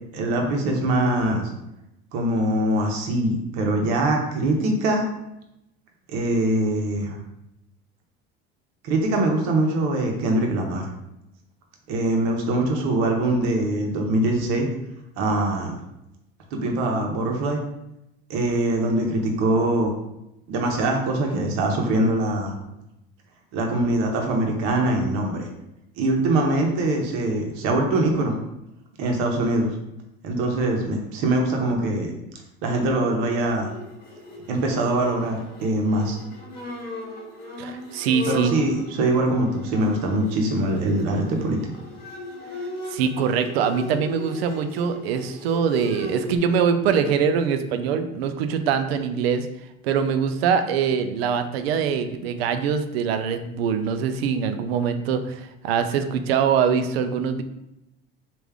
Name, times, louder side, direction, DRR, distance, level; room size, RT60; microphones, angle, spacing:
voice 1, 0.1-1.5 2.1-5.0 6.1-7.2 8.8-10.8 11.9-14.7 15.2-15.7 16.5-17.6 18.3-19.9 20.5-22.5 23.5-25.5 26.0-28.3 29.0-29.7 30.2-32.1 32.6-33.7 34.5-36.2 38.3-41.6, right 1 dB, 65° right, 1 dB, 1.0 m, -23 dB
Bowed string instrument, 33.4-46.4, left 2 dB, 30° left, 1.4 m, -37 dB
voice 2, 37.6-38.6 42.9-49.5 49.8-57.4, right 7 dB, 85° right, 9 dB, 0.5 m, -23 dB
3.3 x 2.5 x 3.4 m, 0.87 s
hypercardioid pair, 80°, 30 cm